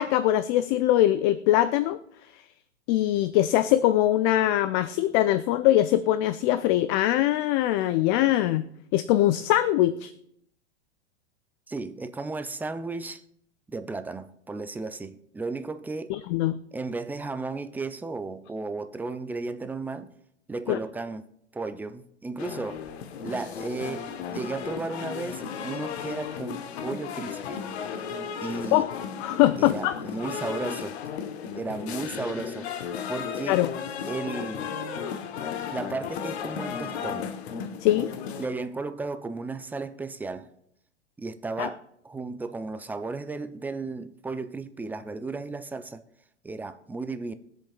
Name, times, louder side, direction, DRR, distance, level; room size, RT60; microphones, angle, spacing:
voice 1, 0.0-2.0 2.9-8.6 8.9-10.1 16.1-16.6 20.7-20.8 28.7-28.9 29.2-30.0 33.5-33.7 37.8-38.1 41.6-41.7, left 14 dB, 40° left, 0.6 m, -22 dB
voice 2, 11.7-13.2 13.7-16.1 16.7-20.1 20.5-21.2 21.5-22.8 23.2-27.6 28.4-28.8 29.6-31.0 31.5-33.6 34.1-34.8 35.7-37.3 38.4-40.5 41.2-46.0 46.4-47.3, right 3 dB, 5° right, 0.5 m, -34 dB
sound 1, 22.4-38.5, left 7 dB, 65° left, 1.3 m, -35 dB
22.5 x 7.8 x 2.4 m
hypercardioid pair, 105°, 35 cm